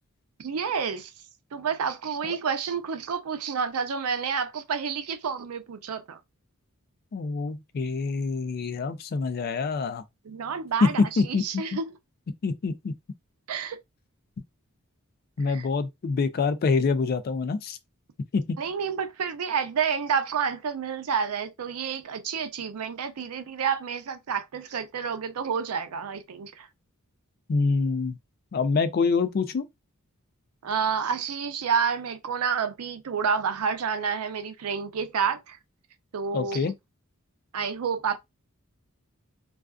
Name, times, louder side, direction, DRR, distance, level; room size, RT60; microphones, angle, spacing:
voice 1, 0.4-1.1 1.5-6.2 10.3-11.8 13.5-13.8 15.5-15.7 18.6-26.7 30.6-35.6 36.1-36.7 37.5-38.2, right 6 dB, 90° right, 0.5 m, -29 dB
voice 2, 7.1-10.0 10.8-11.6 12.4-12.9 15.4-17.8 18.3-18.6 27.5-28.2 28.5-29.7 36.3-36.7, left 4 dB, 45° left, 0.3 m, -26 dB
2.4 x 2.3 x 2.2 m
head